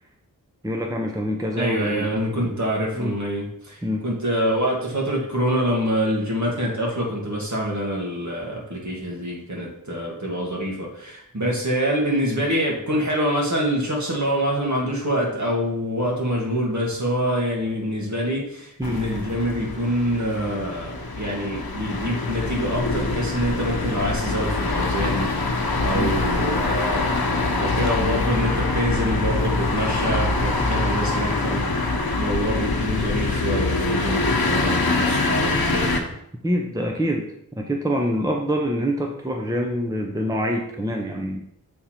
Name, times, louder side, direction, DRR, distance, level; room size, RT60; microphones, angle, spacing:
voice 1, 0.6-2.6 2.9-3.2 3.8-4.1 18.8-19.0 25.9-26.1 36.4-41.4, equal, 10° right, 1 dB, 0.7 m, -26 dB
voice 2, 1.6-25.3 25.8-27.2 27.6-35.9, equal, 50° right, -2 dB, 1.8 m, -25 dB
sound 1, 18.8-36.0, left 3 dB, 80° left, 0.9 m, -24 dB
sound 2, 22.3-33.1, left 1 dB, 25° left, 1.4 m, -40 dB
6.9 x 3.6 x 4.4 m, 0.76 s
wide cardioid pair, 65°, 36 cm